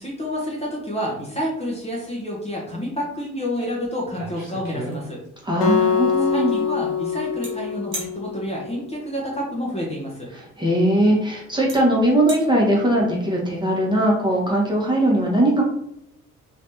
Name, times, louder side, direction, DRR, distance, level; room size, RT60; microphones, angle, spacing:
voice 1, 0.0-5.2 6.2-10.3, equal, 15° left, -4 dB, 1.0 m, -29 dB
sound 1, 3.6-3.7 4.0-5.4 7.4-7.5 7.9-8.1 10.0-10.1 11.0-11.1 11.7-11.8 12.1-12.4, right 2 dB, 80° right, 1.1 m, -33 dB
voice 2, 5.4-6.6 10.3-15.6, right 1 dB, 10° right, -3 dB, 1.2 m, -20 dB
Acoustic guitar, 5.6-8.9, left 6 dB, 75° left, 0.6 m, -24 dB
3.3 x 3.2 x 2.7 m, 0.79 s
figure-of-eight pair, 50°, 40 cm